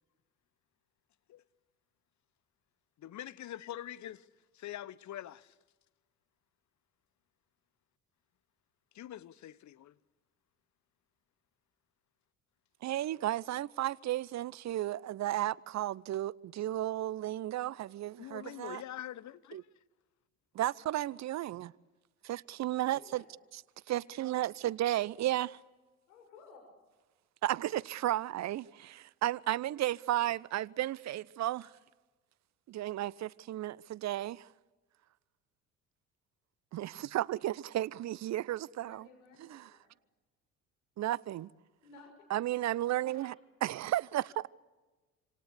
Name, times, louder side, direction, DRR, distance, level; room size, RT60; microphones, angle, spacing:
voice 1, 3.0-4.3 4.5-5.5 8.9-9.9 18.2-19.6, left 12 dB, 45° left, 1.2 m, -44 dB
voice 2, 12.8-18.8 19.5-19.6 20.5-21.7 22.2-23.2 23.9-25.6 27.4-31.7 32.7-34.5 36.7-39.1 39.5-39.7 41.0-41.5 42.3-43.3 43.6-44.5, right 14 dB, 40° right, 0.8 m, -33 dB
voice 3, 22.8-23.4 24.0-24.7 26.1-26.7 38.7-39.9 41.8-42.3 43.1-43.3, left 4 dB, 75° left, 6.3 m, -57 dB
28.0 x 26.5 x 6.8 m
figure-of-eight pair, 55°, 41 cm